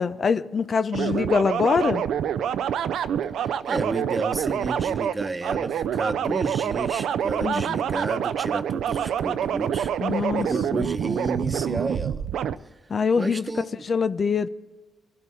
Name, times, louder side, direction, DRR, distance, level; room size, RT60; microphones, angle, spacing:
voice 1, 0.0-2.0 7.4-7.8 10.0-10.9 12.9-13.5 13.8-14.5, left 5 dB, 50° left, 0.5 m, -24 dB
sound 1, 0.9-12.6, right 9 dB, 70° right, 0.5 m, -27 dB
voice 2, 3.4-9.9 10.4-12.2 13.2-13.8, right 3 dB, 30° right, 1.0 m, -31 dB
22.0 x 12.0 x 3.7 m
hypercardioid pair, 50°, 0 cm